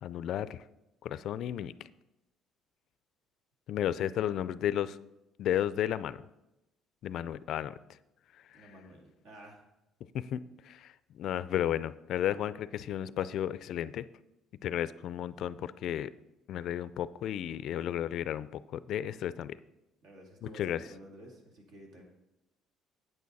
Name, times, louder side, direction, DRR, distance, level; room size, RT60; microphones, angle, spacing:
voice 1, 0.0-0.6 1.0-1.7 3.7-5.0 5.4-6.2 7.0-7.7 8.6-8.7 10.1-14.1 14.6-16.1 16.5-19.6 20.4-20.8, left 11 dB, 60° left, 16 dB, 0.3 m, -33 dB
voice 2, 8.5-9.6 20.0-22.0, right 1 dB, 75° right, 0 dB, 2.4 m, -52 dB
8.9 x 8.6 x 4.1 m, 0.94 s
cardioid pair, 120°, 0 cm